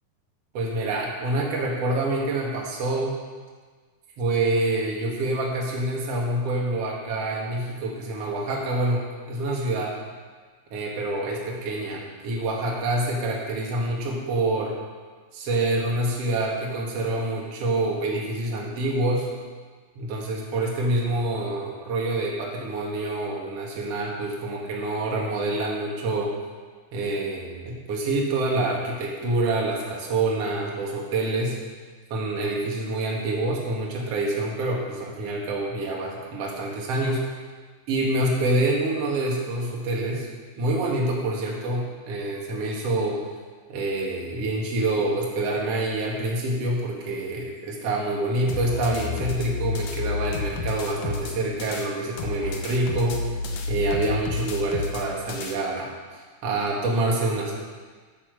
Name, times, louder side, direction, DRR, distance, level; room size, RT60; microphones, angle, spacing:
voice 1, 0.5-3.2 4.2-10.0 10.7-14.8 15.3-19.3 20.0-26.3 26.9-31.6 32.1-37.2 37.9-40.3 40.6-43.2 43.7-53.3 53.7-55.9 56.4-57.6, right 2 dB, 50° right, -2 dB, 2.6 m, -26 dB
sound 1, 48.5-51.9 52.2-55.6, left 4 dB, 70° left, 1.8 m, -30 dB
9.1 x 8.6 x 6.6 m, 1.5 s
omnidirectional pair, 4.3 m